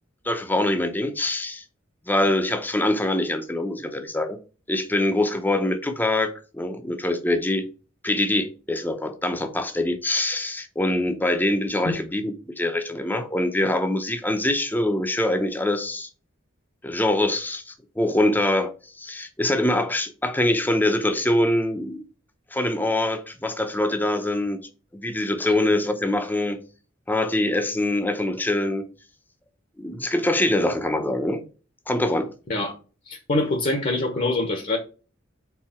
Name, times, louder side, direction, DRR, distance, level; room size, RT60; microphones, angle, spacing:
voice 1, 0.2-1.6 2.1-4.4 4.7-7.7 8.0-16.1 16.8-22.0 22.5-26.6 27.1-28.9 29.8-31.4 31.9-32.3, left 1 dB, 10° left, 0.7 m, -24 dB
voice 2, 33.1-34.8, left 2 dB, 40° left, 1.0 m, -24 dB
4.7 x 4.0 x 5.6 m
head